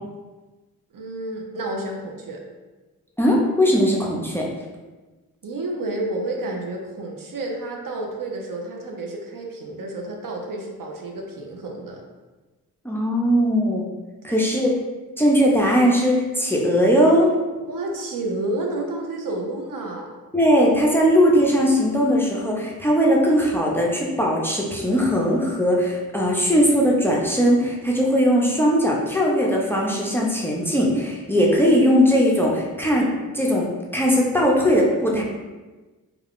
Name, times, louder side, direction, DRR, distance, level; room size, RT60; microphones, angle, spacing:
voice 1, 0.9-2.4 5.4-12.0 14.3-14.4 17.6-20.1, right 2 dB, 60° right, 1 dB, 0.6 m, -30 dB
voice 2, 3.2-4.4 12.8-13.9 14.2-14.7 15.2-17.3 20.3-33.1 33.3-33.7 33.9-35.2, equal, 5° left, -3 dB, 0.5 m, -19 dB
2.3 x 2.3 x 3.5 m, 1.2 s
cardioid pair, 60°, 37 cm